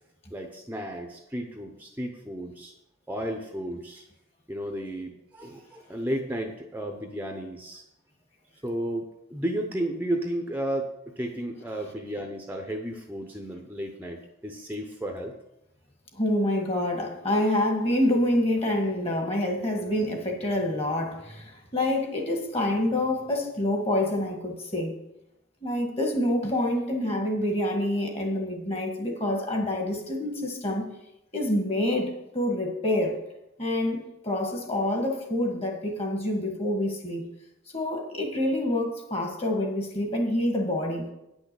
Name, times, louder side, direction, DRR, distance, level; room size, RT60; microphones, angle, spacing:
voice 1, 0.3-2.7 3.1-4.0 4.5-7.8 8.6-10.9 11.2-15.3, right 1 dB, 10° right, 0.7 m, -33 dB
voice 2, 16.2-25.0 25.6-30.9 31.3-33.2 33.6-37.2 37.7-41.0, left 1 dB, 30° left, 1.8 m, -27 dB
9.2 x 6.2 x 6.8 m
head